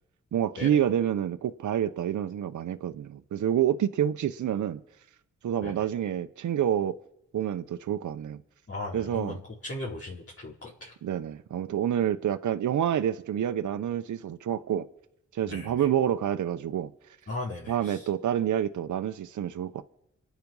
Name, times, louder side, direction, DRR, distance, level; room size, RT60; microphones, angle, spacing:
voice 1, 0.3-4.8 5.4-7.0 7.3-8.4 8.9-9.4 11.0-14.9 15.3-16.9 17.7-19.8, right 10 dB, 80° right, 0.8 m, -28 dB
voice 2, 8.7-10.9 15.5-15.9 17.3-18.1, left 2 dB, 50° left, 4.6 m, -38 dB
28.0 x 9.4 x 5.5 m
cardioid pair, 55°, 30 cm